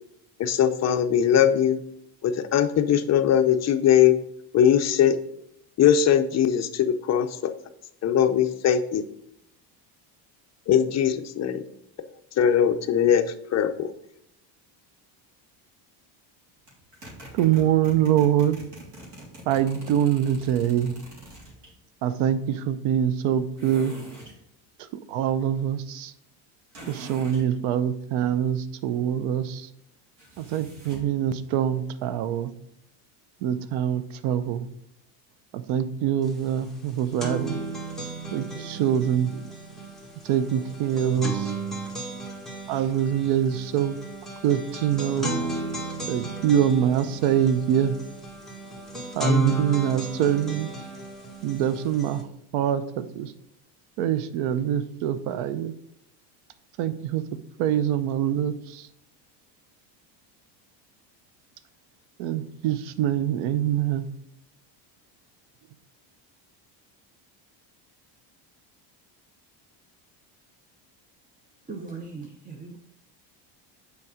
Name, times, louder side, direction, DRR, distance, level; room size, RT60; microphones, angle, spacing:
voice 1, 0.4-1.8 2.2-4.2 4.5-5.2 5.8-7.5 8.0-9.0 10.7-11.6 12.4-13.2 13.5-13.9, left 9 dB, 35° left, 9 dB, 0.5 m, -20 dB
sound 1, 16.7-21.7 23.6-24.4 26.7-27.5 30.2-31.1, right 1 dB, 55° right, 3.2 m, -44 dB
voice 2, 17.3-18.6 19.5-20.9 22.0-23.9 25.1-26.1 26.9-29.7 30.4-32.5 33.4-34.7 35.5-37.6 38.3-39.5 40.2-41.5 42.7-44.0 44.4-45.4 46.1-48.0 49.1-50.7 51.4-52.3 52.5-53.3 54.0-55.7 56.8-57.2 57.6-58.9 62.2-64.1, right 10 dB, 80° right, 13 dB, 0.8 m, -24 dB
sound 2, 36.3-36.4 36.7-52.2, right 2 dB, ahead, 1.5 m, -33 dB
voice 3, 71.7-72.8, right 4 dB, 15° right, 2 dB, 0.6 m, -38 dB
7.0 x 4.8 x 4.9 m, 0.78 s
cardioid pair, 135°, 48 cm